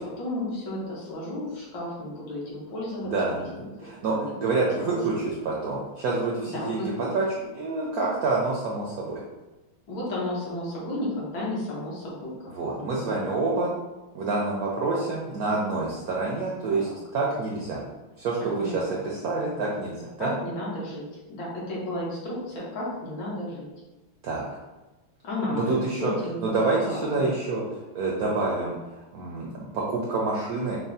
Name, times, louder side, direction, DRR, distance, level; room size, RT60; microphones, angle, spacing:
voice 1, 0.2-4.5 4.9-5.0 6.5-7.1 9.9-12.4 12.8-13.4 16.7-16.9 18.6-19.0 20.2-23.7 25.2-26.5 26.8-27.2, left 1 dB, 65° left, -6 dB, 1.8 m, -33 dB
voice 2, 3.0-3.5 3.8-9.2 12.5-13.7 14.1-17.8 18.2-20.3 24.2-24.5 25.5-26.1 26.4-30.8, right 3 dB, 75° right, -3 dB, 0.8 m, -27 dB
6.0 x 2.1 x 2.7 m, 1.1 s
omnidirectional pair, 2.2 m